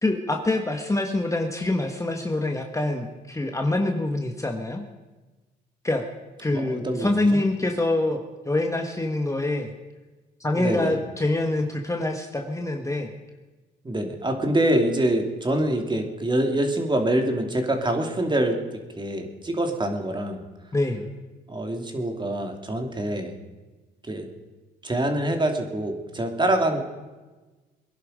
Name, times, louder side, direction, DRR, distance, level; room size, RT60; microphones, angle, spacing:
voice 1, 0.0-4.9 5.8-6.1 6.4-9.7 10.4-13.1 20.7-21.1, left 2 dB, 15° left, 3 dB, 1.4 m, -25 dB
voice 2, 6.5-7.4 10.6-10.9 13.8-18.6 19.0-20.4 21.5-23.3 24.1-24.3 24.8-26.8, right 1 dB, 25° right, 4 dB, 2.6 m, -25 dB
22.5 x 11.0 x 5.2 m, 1.2 s
cardioid pair, 90°, 20 cm